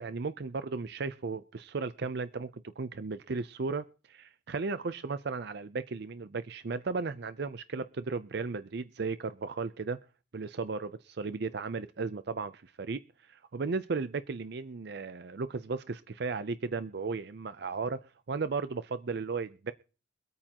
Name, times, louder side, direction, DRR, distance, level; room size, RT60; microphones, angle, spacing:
voice 1, 0.0-10.0 10.3-13.0 13.3-18.0 18.3-19.7, right 4 dB, 60° right, 13 dB, 0.5 m, -35 dB
24.0 x 8.8 x 2.9 m, 0.36 s
head